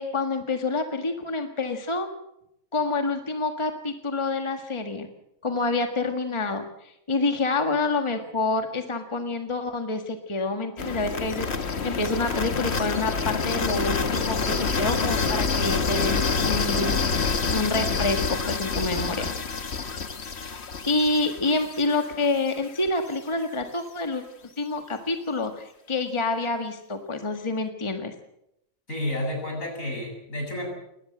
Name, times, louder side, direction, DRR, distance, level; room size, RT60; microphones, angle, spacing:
voice 1, 0.0-2.1 2.7-5.1 5.4-19.3 20.4-24.2 24.6-28.1, left 3 dB, 20° left, 6 dB, 1.7 m, -28 dB
sound 1, 10.8-22.7, left 4 dB, 50° left, 1.6 m, -27 dB
voice 2, 28.9-30.7, left 1 dB, 75° left, 1 dB, 7.9 m, -30 dB
21.0 x 18.5 x 7.9 m, 0.82 s
omnidirectional pair, 1.4 m